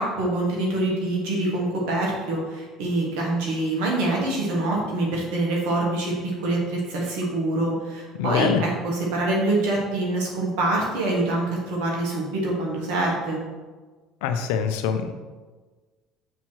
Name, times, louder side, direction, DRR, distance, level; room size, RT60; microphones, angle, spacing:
voice 1, 0.0-13.4, right 2 dB, 75° right, -2 dB, 1.4 m, -25 dB
voice 2, 8.1-8.6 14.2-15.1, left 7 dB, 80° left, 8 dB, 0.5 m, -24 dB
7.0 x 3.0 x 4.5 m, 1.3 s
supercardioid pair, 85°, 0 cm